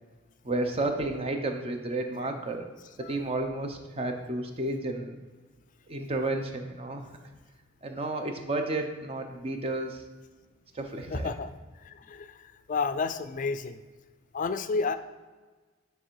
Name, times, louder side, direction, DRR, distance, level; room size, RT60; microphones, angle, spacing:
voice 1, 0.4-2.7 3.0-5.2 5.9-7.0 7.8-10.0 10.7-11.3, right 2 dB, 30° right, 5 dB, 0.7 m, -31 dB
voice 2, 11.1-11.5 11.8-12.4 12.7-13.8 14.3-15.0, left 4 dB, 40° left, 11 dB, 0.4 m, -31 dB
9.2 x 3.3 x 4.7 m, 1.3 s
head